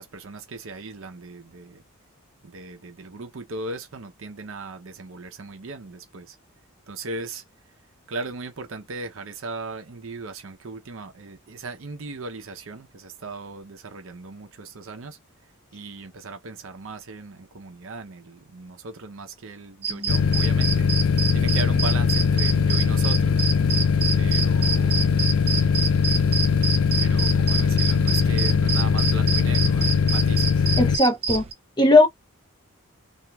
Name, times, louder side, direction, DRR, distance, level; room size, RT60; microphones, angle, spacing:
voice 1, 0.0-1.8 2.5-6.3 6.9-7.4 8.1-15.2 15.7-20.9 21.3-23.4 24.2-25.1 27.0-30.4, right 3 dB, 65° right, 0.7 m, -37 dB
sound 1, 19.8-31.5, right 6 dB, 30° right, 0.3 m, -27 dB
sound 2, 19.9-29.9, left 1 dB, 10° right, 0.9 m, -38 dB
Refreg Start - long -stop, 20.1-31.0, left 6 dB, 70° left, 0.3 m, -21 dB
voice 2, 30.8-31.4 31.8-32.1, left 2 dB, 20° left, 0.6 m, -17 dB
3.0 x 2.5 x 2.3 m
head